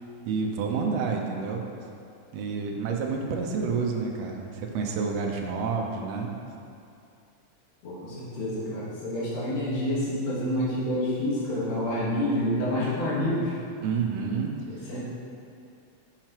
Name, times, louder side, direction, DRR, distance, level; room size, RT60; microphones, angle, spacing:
voice 1, 0.3-1.6 2.3-6.3 13.8-14.5, right 5 dB, 75° right, 1 dB, 1.6 m, -29 dB
voice 2, 7.8-13.5 14.7-15.0, left 1 dB, 90° left, -8 dB, 3.1 m, -28 dB
7.3 x 5.6 x 3.0 m, 2.6 s
omnidirectional pair, 3.4 m